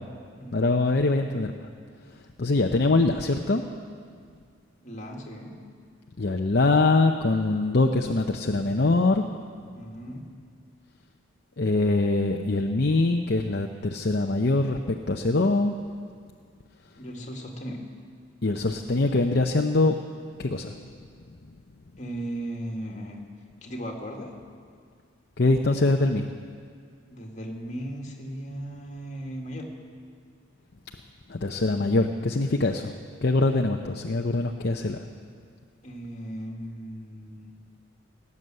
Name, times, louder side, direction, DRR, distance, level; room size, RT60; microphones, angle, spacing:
voice 1, 0.5-1.5 2.4-3.6 6.2-9.2 11.6-15.7 18.4-20.0 20.4-20.7 25.4-26.3 31.3-32.9 33.2-35.1, left 2 dB, 50° left, 3 dB, 0.7 m, -23 dB
voice 2, 4.8-5.6 9.7-10.3 17.0-17.8 22.0-23.2 23.6-24.3 27.1-29.7 35.8-37.5, right 1 dB, 35° left, 0 dB, 2.0 m, -37 dB
19.0 x 9.6 x 7.7 m, 2.1 s
head